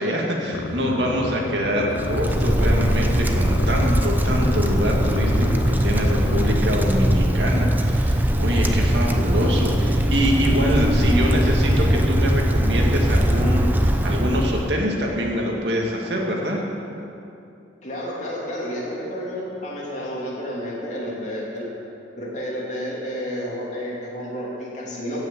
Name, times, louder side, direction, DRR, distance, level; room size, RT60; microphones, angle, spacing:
voice 1, 0.0-16.6, equal, 75° right, -1 dB, 2.1 m, -24 dB
sound 1, 0.5-6.6, left 4 dB, 80° left, 0.5 m, -31 dB
Wind, 1.9-14.8, right 1 dB, 10° right, 0.6 m, -20 dB
voice 2, 17.8-21.7 22.1-25.3, equal, 40° left, -5 dB, 2.9 m, -30 dB
16.0 x 6.3 x 7.4 m, 2.7 s
head